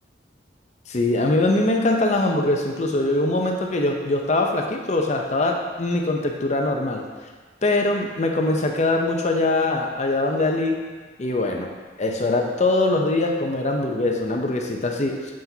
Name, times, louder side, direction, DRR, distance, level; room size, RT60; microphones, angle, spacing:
voice 1, 0.9-7.0 7.6-10.8 11.2-11.7 12.0-15.2, left 2 dB, 40° left, 2 dB, 0.7 m, -22 dB
7.5 x 5.8 x 2.8 m, 1.4 s
head